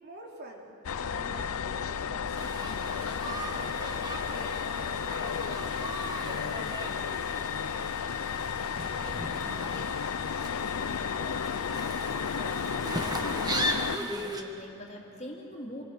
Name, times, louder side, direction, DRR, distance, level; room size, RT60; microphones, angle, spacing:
voice 1, 0.0-7.1, right 1 dB, 50° right, -1 dB, 3.6 m, -47 dB
sound 1, 0.8-14.0, left 7 dB, 90° left, 0.5 m, -33 dB
sound 2, 2.4-14.4, right 1 dB, 20° right, 1.7 m, -38 dB
voice 2, 13.5-15.8, equal, 30° left, 0 dB, 2.8 m, -42 dB
27.0 x 22.5 x 6.7 m, 2.9 s
head